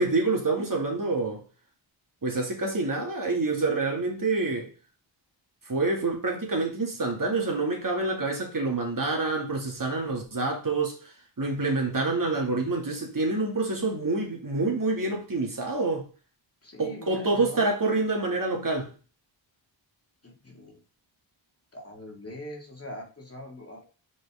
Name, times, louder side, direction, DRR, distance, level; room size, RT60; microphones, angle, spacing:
voice 1, 0.0-1.4 2.2-4.7 5.7-11.0 11.4-16.1 16.8-18.9, right 3 dB, 45° right, 2.4 m, -27 dB
voice 2, 16.6-17.7 20.2-20.8 21.7-23.8, left 1 dB, 30° left, 2.1 m, -42 dB
6.5 x 5.1 x 3.7 m
wide cardioid pair, 90°, 48 cm